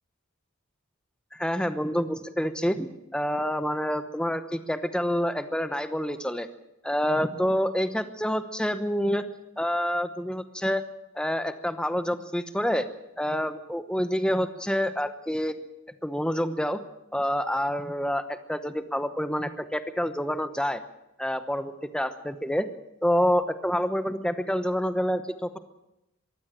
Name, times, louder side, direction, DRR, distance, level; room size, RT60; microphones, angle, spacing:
voice 1, 1.3-2.9 3.1-6.5 6.8-9.2 9.6-10.8 11.1-12.9 13.2-15.5 16.0-16.8 17.1-20.8 21.2-22.7 23.0-25.6, equal, 5° left, 10 dB, 1.0 m, -27 dB
22.5 x 15.5 x 7.5 m, 0.91 s
head